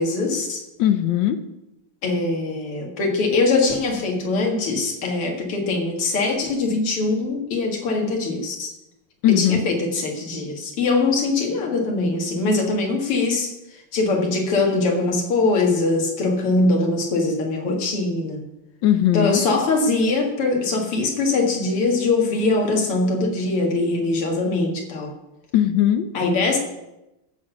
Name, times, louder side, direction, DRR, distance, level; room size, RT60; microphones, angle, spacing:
voice 1, 0.0-0.6 2.0-8.7 9.3-18.4 19.1-25.1 26.1-26.6, left 3 dB, 85° left, 1 dB, 2.7 m, -22 dB
voice 2, 0.8-1.4 9.2-9.6 18.8-19.4 25.5-26.1, left 11 dB, 70° left, 10 dB, 1.2 m, -18 dB
14.0 x 6.2 x 5.9 m, 0.94 s
omnidirectional pair, 2.4 m